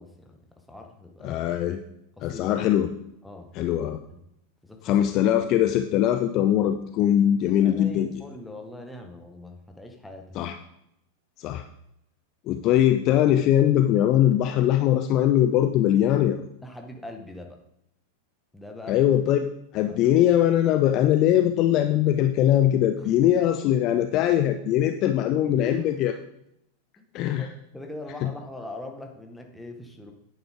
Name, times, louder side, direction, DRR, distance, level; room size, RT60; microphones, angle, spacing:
voice 1, 0.0-1.4 2.2-2.5 3.2-3.5 4.1-4.2 4.6-4.9 7.6-10.4 16.6-17.6 18.5-19.1 19.9-20.2 23.0-23.1 25.6-26.0 27.0-27.1 27.4-30.1, left 2 dB, 5° left, 3 dB, 1.7 m, -41 dB
voice 2, 1.2-1.8 2.2-2.9 3.6-4.0 4.8-8.1 10.4-10.6 11.4-11.6 12.5-16.4 18.9-19.5 19.7-26.1 27.1-27.5, left 11 dB, 40° left, 8 dB, 0.6 m, -21 dB
10.5 x 8.9 x 3.8 m, 0.79 s
figure-of-eight pair, 90°, 0 cm